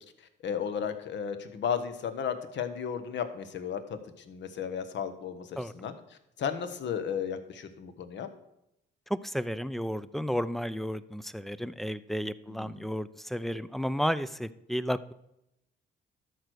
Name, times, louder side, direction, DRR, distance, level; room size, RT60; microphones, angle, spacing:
voice 1, 0.4-4.0 4.3-5.9 6.4-8.3 12.6-12.8, left 7 dB, 65° left, 10 dB, 1.2 m, -34 dB
voice 2, 9.1-15.1, equal, ahead, 16 dB, 0.4 m, -32 dB
12.5 x 4.7 x 6.3 m, 0.84 s
cardioid pair, 90°, 20 cm